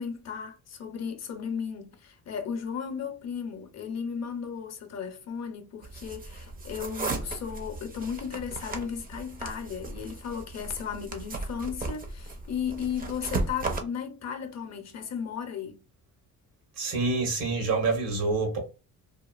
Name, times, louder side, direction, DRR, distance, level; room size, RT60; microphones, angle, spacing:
voice 1, 0.0-15.8, left 7 dB, 50° left, 0.6 m, -35 dB
sound 1, 5.8-13.8, right 3 dB, 25° right, 0.4 m, -36 dB
voice 2, 16.8-18.6, right 3 dB, 85° right, 1.3 m, -27 dB
2.8 x 2.4 x 2.3 m
cardioid pair, 135°, 34 cm